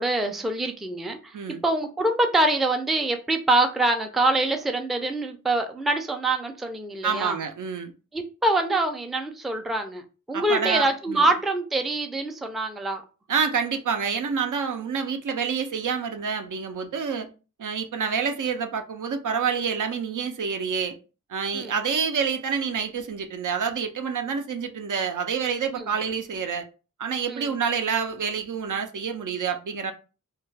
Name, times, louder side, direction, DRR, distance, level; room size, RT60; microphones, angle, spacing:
voice 1, 0.0-1.4 1.6-7.4 8.1-10.0 10.3-13.0 21.5-21.7 25.7-25.9 27.3-27.5, right 2 dB, ahead, 0.3 m, -25 dB
voice 2, 7.0-7.9 10.3-11.3 13.3-17.3 17.6-21.0 21.3-26.7 27.0-29.9, right 6 dB, 65° right, 0.5 m, -27 dB
2.3 x 2.2 x 3.2 m
wide cardioid pair, 70°, 33 cm